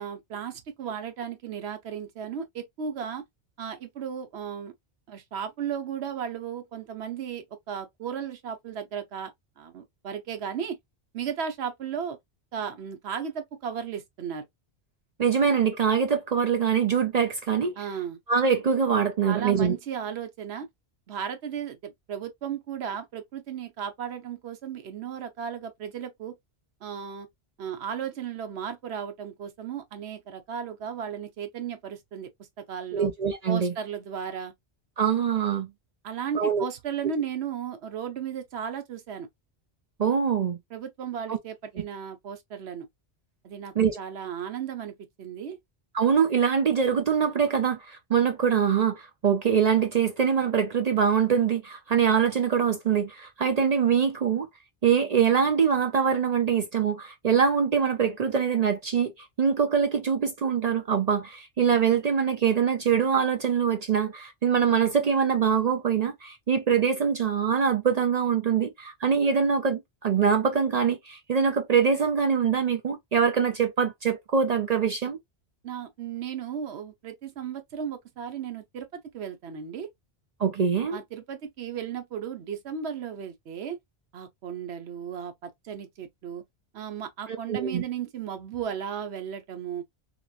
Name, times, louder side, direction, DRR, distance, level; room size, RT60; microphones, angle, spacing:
voice 1, 0.0-3.2 3.6-4.7 5.1-10.8 11.1-12.2 12.5-14.5 17.8-18.2 19.3-20.7 21.1-26.3 26.8-27.3 27.6-33.1 33.5-34.5 36.0-39.3 40.7-42.9 43.4-45.6 75.6-78.9 79.1-79.9 80.9-83.8 84.1-86.4 86.7-89.8, right 8 dB, 75° right, 1.0 m, -35 dB
voice 2, 15.2-17.7 18.3-19.8 32.9-33.7 35.0-35.7 36.3-36.6 40.0-40.6 41.3-41.4 43.8-44.0 45.9-54.5 54.8-75.2 80.4-81.0 87.3-87.8, right 7 dB, 55° right, 0.5 m, -24 dB
2.9 x 2.9 x 2.4 m
omnidirectional pair, 1.1 m